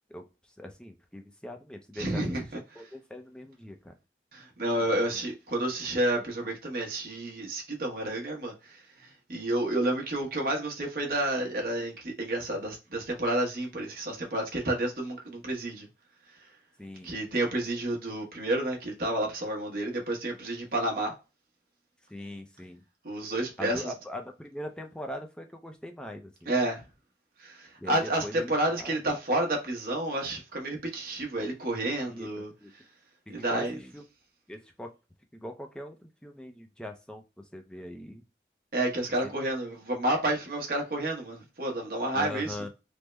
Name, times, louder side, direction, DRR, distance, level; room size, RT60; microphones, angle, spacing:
voice 1, 0.1-2.2 2.8-4.0 4.8-5.2 16.8-17.2 22.1-22.8 23.6-26.5 27.8-29.0 32.1-32.3 32.6-32.7 33.3-34.1 34.5-34.9 35.3-38.2 42.1-42.7, left 1 dB, 5° left, 0.4 m, -41 dB
voice 2, 2.0-2.6 4.3-15.9 17.0-21.1 23.0-23.9 26.5-26.8 27.4-32.5 33.3-33.8 38.7-42.6, right 1 dB, 55° right, 0.9 m, -30 dB
3.4 x 2.0 x 3.1 m
head